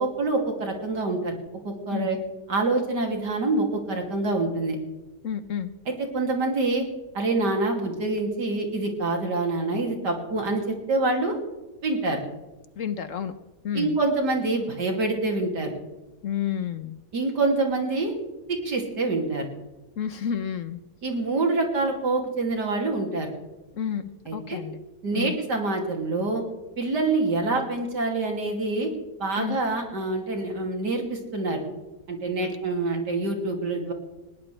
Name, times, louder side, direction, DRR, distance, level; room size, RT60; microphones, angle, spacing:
voice 1, 0.0-1.4 1.6-2.2 2.5-4.8 5.9-6.8 7.1-11.4 11.8-12.2 13.7-15.7 17.1-18.1 18.5-19.4 21.0-23.3 24.3-24.6 25.0-26.4 26.8-28.9 29.2-31.6 32.1-33.9, right 3 dB, 85° right, 1 dB, 3.4 m, -26 dB
voice 2, 5.2-5.7 12.8-13.3 13.6-14.0 16.2-17.0 20.0-20.8 23.7-24.8 25.1-25.4 29.4-29.6 32.4-32.6, left 8 dB, 60° left, 12 dB, 1.1 m, -30 dB
20.0 x 18.5 x 3.3 m, 1.1 s
omnidirectional pair, 1.7 m